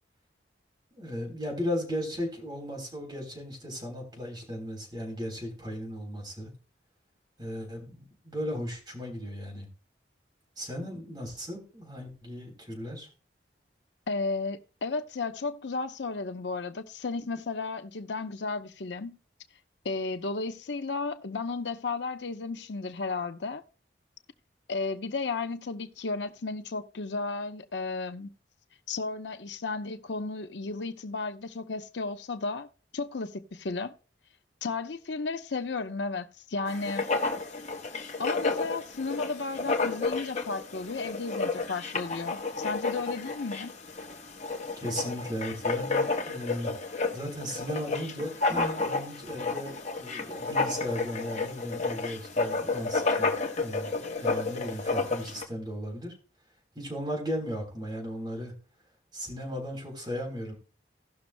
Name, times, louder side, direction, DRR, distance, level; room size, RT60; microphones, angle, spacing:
voice 1, 0.9-6.5 7.4-9.7 10.6-13.1 44.8-46.7 47.1-56.1 56.8-58.5 59.1-60.5, equal, 25° right, 3.6 m, -36 dB
voice 2, 14.1-19.2 19.8-23.6 24.7-28.3 28.9-32.7 32.9-33.9 34.6-37.1 38.2-43.7, left 3 dB, 85° left, 0.8 m, -33 dB
Writing, 36.7-55.5, left 3 dB, 40° left, 1.1 m, -31 dB
17.5 x 6.2 x 2.2 m
head